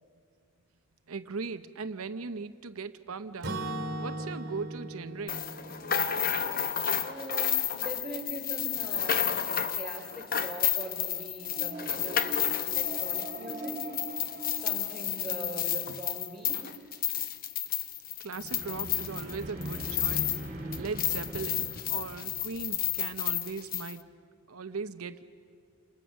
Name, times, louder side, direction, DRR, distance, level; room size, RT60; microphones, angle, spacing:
voice 1, 1.1-3.6 4.0-5.5 18.2-20.4 20.8-24.1 24.5-25.2, right 4 dB, 75° right, 10 dB, 0.8 m, -38 dB
Acoustic guitar / Strum, 3.4-7.4, right 2 dB, 50° right, 2.2 m, -39 dB
sound 1, 5.3-20.5 20.7-23.9, left 9 dB, 40° left, 0.9 m, -31 dB
voice 2, 7.0-13.8 14.5-16.8, right 2 dB, ahead, 1 dB, 3.9 m, -42 dB
sound 2, 11.4-15.7 18.3-23.3, right 1 dB, 30° right, 3.5 m, -42 dB
29.0 x 28.0 x 6.4 m, 2.2 s
head